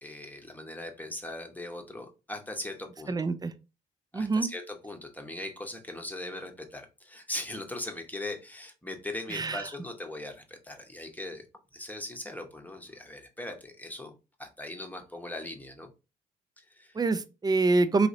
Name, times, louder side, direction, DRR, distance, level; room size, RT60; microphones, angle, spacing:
voice 1, 0.0-3.3 4.1-11.4 11.7-15.9 16.6-17.0, left 1 dB, 10° left, 1.0 m, -40 dB
voice 2, 3.1-3.5 4.1-4.5 9.3-9.6 17.0-18.1, right 3 dB, 20° right, 0.5 m, -25 dB
3.9 x 2.8 x 2.7 m
hypercardioid pair, 45°, 21 cm